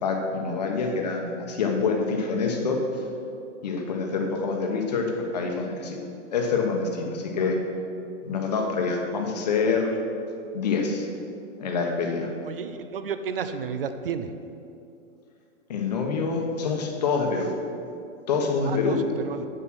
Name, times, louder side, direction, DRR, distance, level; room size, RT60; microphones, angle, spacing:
voice 1, 0.0-2.8 3.6-6.0 6.3-7.6 8.2-10.0 10.5-11.1 11.6-12.3 15.7-17.5 18.3-19.0, left 4 dB, 35° left, 2 dB, 1.1 m, -26 dB
voice 2, 12.5-14.3 18.7-19.5, right 6 dB, 50° right, 10 dB, 0.6 m, -32 dB
8.2 x 7.4 x 6.2 m, 2.6 s
hypercardioid pair, 175°, 37 cm